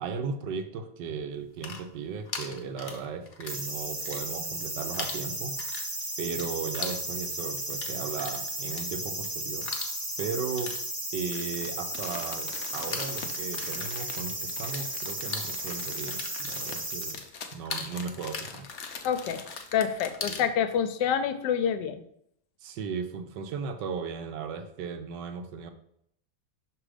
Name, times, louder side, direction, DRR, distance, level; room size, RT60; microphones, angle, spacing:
voice 1, 0.0-5.6 6.2-9.7 10.2-10.7 11.1-17.2 17.5-18.7 20.2-20.5 22.6-25.7, right 5 dB, 80° right, 7 dB, 1.3 m, -36 dB
sound 1, 1.4-3.7 3.9-4.7 4.9-14.9 15.1-20.5, left 5 dB, 50° left, 1.0 m, -40 dB
sound 2, 3.5-17.1, right 1 dB, 25° right, 0.5 m, -35 dB
Crumpling crinkling, 11.6-20.3 20.7-20.8, left 6 dB, 65° left, 0.6 m, -44 dB
voice 2, 19.0-19.4 19.7-22.0, left 8 dB, 85° left, 10 dB, 1.2 m, -27 dB
6.1 x 3.3 x 4.9 m, 0.71 s
omnidirectional pair, 1.9 m